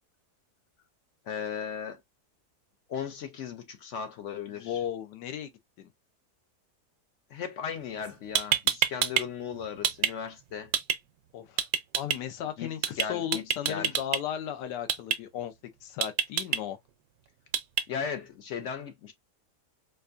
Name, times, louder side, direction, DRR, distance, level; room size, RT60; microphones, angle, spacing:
voice 1, 1.3-2.0 2.9-4.8 7.3-10.7 12.6-14.0 17.9-19.1, left 7 dB, 70° left, 0.7 m, -37 dB
voice 2, 4.6-5.5 5.8-5.9 11.3-11.6 11.9-15.5 15.8-16.8, left 10 dB, 90° left, 1.3 m, -35 dB
sound 1, 8.0-8.1 8.3-9.2 9.5-10.1 10.7-11.0 11.6-12.2 12.8-13.0 13.3-14.2 14.9-15.2 16.0-16.6 17.5-17.8, right 10 dB, 75° right, 1.0 m, -26 dB
4.5 x 2.5 x 2.4 m
omnidirectional pair, 1.8 m